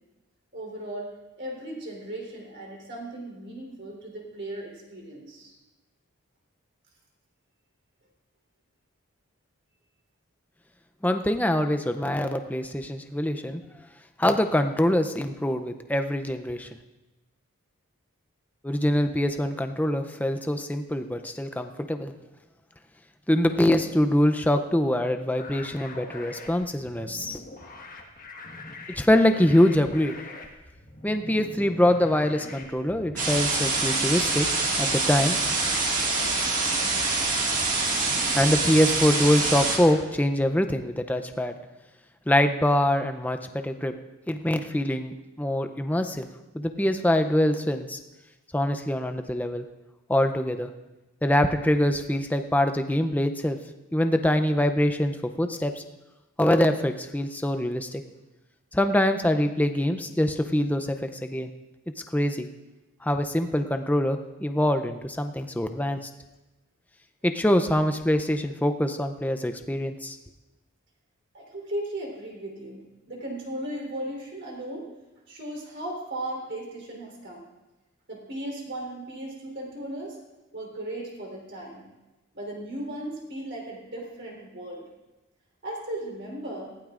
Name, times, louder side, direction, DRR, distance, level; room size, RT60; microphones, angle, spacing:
voice 1, 0.5-5.5 71.3-74.9 75.3-77.4 78.1-80.2 80.5-81.9 82.3-84.9 85.6-86.7, right 1 dB, 50° right, -1 dB, 3.7 m, -36 dB
voice 2, 11.0-13.6 14.2-16.7 18.6-22.1 23.3-27.4 28.9-30.2 31.0-34.5 34.8-35.4 38.4-41.6 42.3-43.9 44.3-46.3 46.5-48.0 48.5-49.6 50.1-50.7 51.2-53.6 53.9-55.8 56.4-58.0 58.7-61.5 62.1-62.5 63.0-66.1 67.2-70.2, left 1 dB, 5° left, 7 dB, 0.5 m, -24 dB
sound 1, 25.4-40.0, left 2 dB, 40° left, 1.4 m, -42 dB
sound 2, 33.2-39.8, right 3 dB, 35° right, 2.0 m, -25 dB
19.0 x 15.5 x 2.5 m, 1.1 s
head